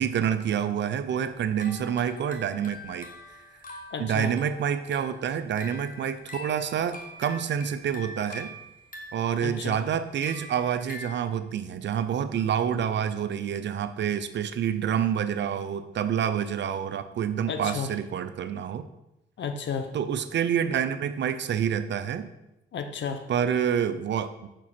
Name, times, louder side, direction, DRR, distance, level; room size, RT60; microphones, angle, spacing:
voice 1, 0.0-3.1 4.0-8.5 9.1-18.8 19.9-22.3 23.3-24.5, right 8 dB, 60° right, 11 dB, 0.5 m, -28 dB
sound 1, 1.1-11.2, left 2 dB, 40° left, 1.2 m, -44 dB
voice 2, 3.9-4.3 9.4-9.8 17.5-17.9 19.4-19.9 22.7-23.2, left 6 dB, 60° left, 7 dB, 0.8 m, -32 dB
5.9 x 4.5 x 4.3 m, 0.91 s
cardioid pair, 75°, 21 cm